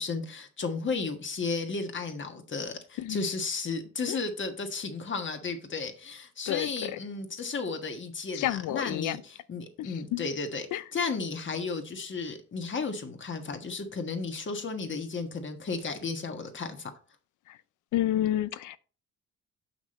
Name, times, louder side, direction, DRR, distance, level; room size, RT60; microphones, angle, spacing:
voice 1, 0.0-16.9, left 4 dB, 40° left, 1.5 m, -34 dB
voice 2, 3.0-3.3 4.1-4.2 6.5-7.0 8.3-9.2 9.8-10.3 10.7-10.8 17.5-17.6 17.9-18.8, left 13 dB, 80° left, 0.6 m, -30 dB
6.4 x 5.9 x 4.2 m
cardioid pair, 90°, 30 cm